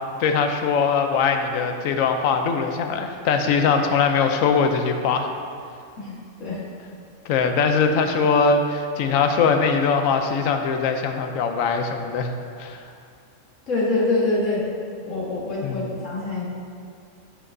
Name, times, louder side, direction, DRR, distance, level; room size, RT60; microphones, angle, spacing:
voice 1, 0.2-5.3 7.3-12.3 12.6-12.8 15.6-15.9, left 5 dB, 85° left, 5 dB, 1.0 m, -21 dB
voice 2, 6.0-6.6 13.7-14.6 15.0-16.4, left 2 dB, 65° left, -6 dB, 1.9 m, -25 dB
11.0 x 5.9 x 2.6 m, 2.4 s
omnidirectional pair, 1.4 m